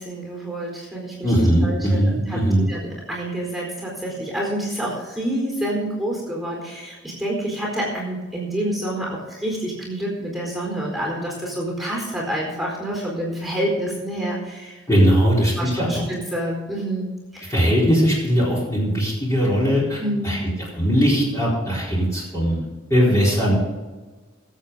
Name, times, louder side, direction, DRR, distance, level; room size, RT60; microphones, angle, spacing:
voice 1, 0.0-14.8 15.6-17.5 20.0-20.4, right 1 dB, ahead, -2 dB, 4.4 m, -28 dB
voice 2, 1.2-2.6 14.9-16.0 17.5-20.4 20.8-22.6 22.9-23.6, equal, 15° left, -6 dB, 4.3 m, -19 dB
21.0 x 8.2 x 3.9 m, 1.3 s
head